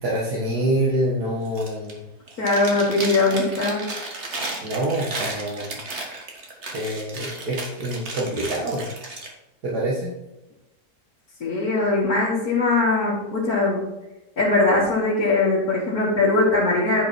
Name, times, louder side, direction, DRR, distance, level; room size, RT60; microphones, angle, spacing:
voice 1, 0.0-2.1 4.6-5.8 6.7-8.9 9.6-10.1, right 1 dB, 65° right, -5 dB, 2.2 m, -26 dB
Chewing mastication, 1.5-2.0 2.3-9.3, right 2 dB, 40° right, 1.8 m, -34 dB
voice 2, 2.4-3.9 11.4-13.9 14.4-17.1, left 2 dB, 60° left, -9 dB, 2.7 m, -21 dB
10.5 x 5.4 x 4.5 m, 0.97 s
omnidirectional pair, 1.8 m